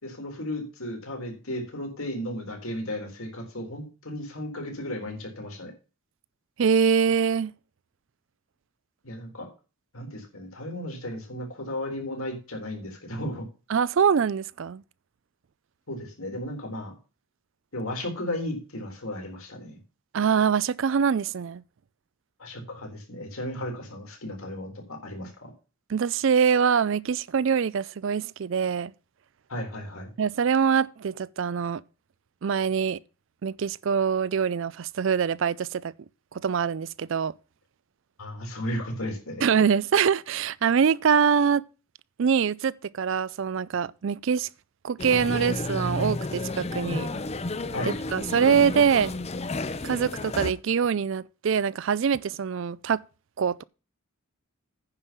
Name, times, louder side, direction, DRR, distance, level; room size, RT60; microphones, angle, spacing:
voice 1, 0.0-5.7 9.0-9.5 9.9-13.4 15.9-17.0 17.7-19.8 22.4-25.5 29.5-30.1 38.2-39.5 47.7-47.9, left 1 dB, 80° left, 4.0 m, -34 dB
voice 2, 6.6-7.5 13.7-14.8 20.1-21.6 25.9-28.9 30.2-31.8 32.4-33.0 33.4-35.9 36.4-37.3 39.4-41.6 42.2-44.5 44.8-47.1 47.9-49.1 49.8-53.0 53.4-53.6, right 6 dB, 60° right, 0.4 m, -24 dB
sound 1, 45.0-50.5, left 2 dB, 30° left, 0.6 m, -31 dB
9.8 x 5.4 x 7.2 m
head